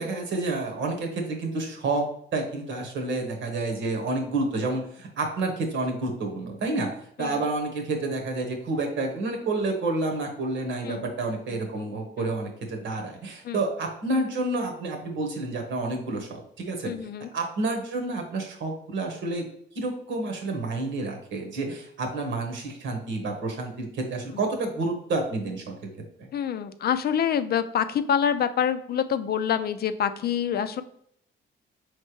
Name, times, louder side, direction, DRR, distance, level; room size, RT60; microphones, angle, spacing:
voice 1, 0.0-2.0 2.3-6.9 7.2-16.9 17.3-19.5 19.7-25.6, right 2 dB, 70° right, 3 dB, 1.2 m, -29 dB
voice 2, 16.8-17.3 26.3-30.8, left 8 dB, 55° left, 11 dB, 0.4 m, -26 dB
4.4 x 3.2 x 3.1 m, 0.68 s
cardioid pair, 90°, 20 cm